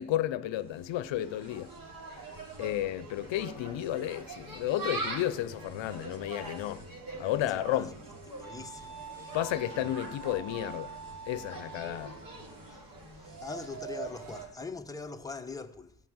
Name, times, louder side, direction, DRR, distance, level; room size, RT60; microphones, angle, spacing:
voice 1, 0.0-1.7 2.6-6.8 7.2-7.9 9.3-10.9 11.3-12.2, left 13 dB, 70° left, 0.7 m, -32 dB
Insect, 0.6-14.5, right 3 dB, 45° right, 3.2 m, -43 dB
Wind instrument woodwind instrument, 7.2-12.5, right 5 dB, 75° right, 5.1 m, -47 dB
voice 2, 7.4-7.9 8.3-9.0 12.7-12.8 13.1-16.0, left 4 dB, 10° left, 1.0 m, -42 dB
15.5 x 5.9 x 8.7 m
cardioid pair, 85°, 47 cm